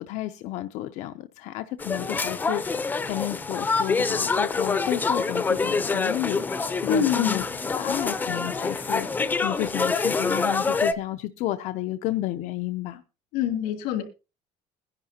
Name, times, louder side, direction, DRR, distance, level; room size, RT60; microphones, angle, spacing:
voice 1, 0.0-7.4 7.7-13.0, left 15 dB, 55° left, 0.6 m, -32 dB
sound 1, 1.8-10.9, left 4 dB, 15° left, 0.6 m, -26 dB
voice 2, 6.8-7.4 13.3-14.0, left 8 dB, 90° left, 3.0 m, -25 dB
22.0 x 10.5 x 2.8 m
cardioid pair, 180°, 14 cm